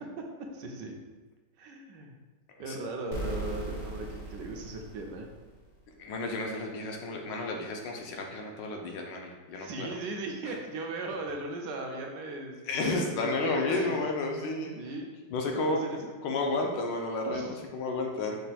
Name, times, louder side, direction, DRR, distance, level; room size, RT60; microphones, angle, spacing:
voice 1, 0.5-1.0 1.6-2.2 2.6-5.3 9.5-14.0 14.7-15.1 15.5-16.2 17.3-17.6 18.2-18.3, right 2 dB, 75° right, 2 dB, 1.2 m, -38 dB
sound 1, 3.1-5.8, right 2 dB, 45° left, 0.7 m, -38 dB
voice 2, 6.0-9.9 10.4-10.5 12.7-14.7 15.3-18.4, left 2 dB, 80° left, 1 dB, 1.3 m, -32 dB
5.3 x 2.2 x 4.1 m, 1.3 s
omnidirectional pair, 2.0 m